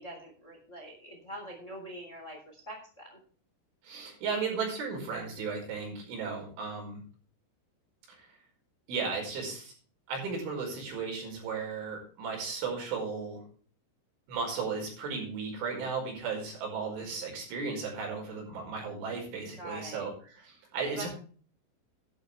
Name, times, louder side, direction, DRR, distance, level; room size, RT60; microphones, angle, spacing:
voice 1, 0.0-3.2 16.8-17.2 19.6-20.0 20.8-21.1, right 1 dB, 15° left, 1 dB, 3.3 m, -44 dB
voice 2, 3.8-7.0 8.1-8.3 8.9-9.7 10.1-13.4 14.3-21.1, right 5 dB, 70° right, 0 dB, 7.4 m, -35 dB
12.5 x 12.0 x 3.4 m, 0.43 s
omnidirectional pair, 5.8 m